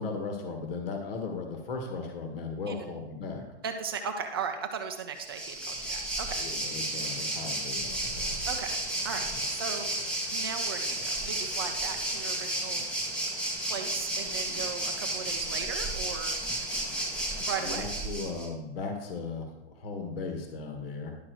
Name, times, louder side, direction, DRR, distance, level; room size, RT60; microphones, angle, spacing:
voice 1, 0.0-3.4 6.4-8.5 9.3-9.4 14.5-14.6 17.5-21.2, left 4 dB, 55° left, 4 dB, 1.6 m, -37 dB
voice 2, 3.6-6.4 6.7-6.8 8.4-8.8 9.0-9.9 10.3-12.9 13.6-16.4 17.4-17.9, right 6 dB, 20° right, 5 dB, 0.4 m, -37 dB
Waves surf, 5.2-18.5, right 1 dB, 5° left, 0.8 m, -32 dB
11.0 x 5.8 x 4.7 m, 0.97 s
hypercardioid pair, 155°, 35 cm